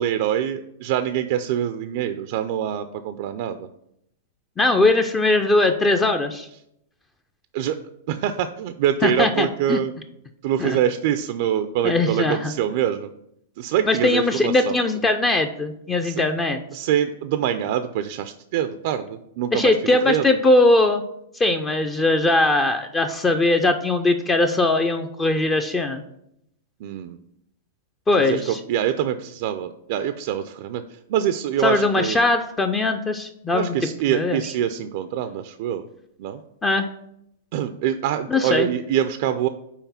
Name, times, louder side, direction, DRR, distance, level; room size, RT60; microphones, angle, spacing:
voice 1, 0.0-3.7 7.5-7.8 8.1-9.9 10.4-13.1 13.6-14.8 16.0-16.2 16.7-19.8 20.0-20.3 26.8-27.2 28.2-30.8 31.1-32.2 33.5-35.8 36.2-36.4 37.5-39.5, right 10 dB, 55° right, 10 dB, 0.4 m, -24 dB
voice 2, 4.6-6.5 9.0-9.8 10.6-10.8 11.8-12.5 13.9-16.6 19.5-21.0 21.3-26.0 28.1-28.6 31.6-33.7 34.1-34.4 36.6-36.9 38.3-38.7, left 2 dB, 15° left, 6 dB, 0.5 m, -20 dB
5.7 x 4.1 x 5.6 m, 0.77 s
hypercardioid pair, 135°, 0 cm